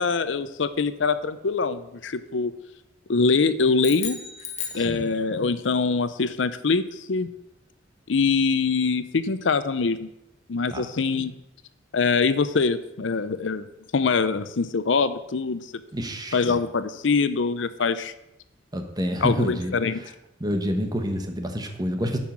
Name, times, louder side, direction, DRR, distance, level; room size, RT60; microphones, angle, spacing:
voice 1, 0.0-2.5 3.1-4.2 4.7-7.3 8.1-10.1 10.5-11.3 11.9-13.7 13.9-15.7 16.3-18.1 19.2-20.0, left 4 dB, 80° left, 13 dB, 0.6 m, -23 dB
sound 1, 3.8-5.6, left 7 dB, 40° left, 1.2 m, -35 dB
voice 2, 4.7-5.1 10.7-10.8 15.9-16.6 18.7-19.7 20.4-22.2, equal, 20° right, 5 dB, 1.3 m, -28 dB
9.3 x 5.6 x 7.3 m, 0.87 s
head